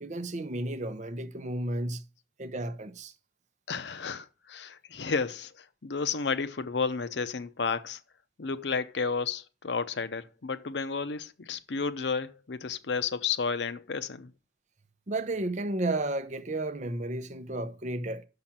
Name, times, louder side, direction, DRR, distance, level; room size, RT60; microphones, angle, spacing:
voice 1, 0.0-2.0 2.4-3.1 15.1-18.2, right 2 dB, 45° right, 0.7 m, -32 dB
voice 2, 3.7-8.0 8.4-14.3, left 5 dB, 80° left, 0.7 m, -32 dB
6.6 x 5.8 x 7.3 m
head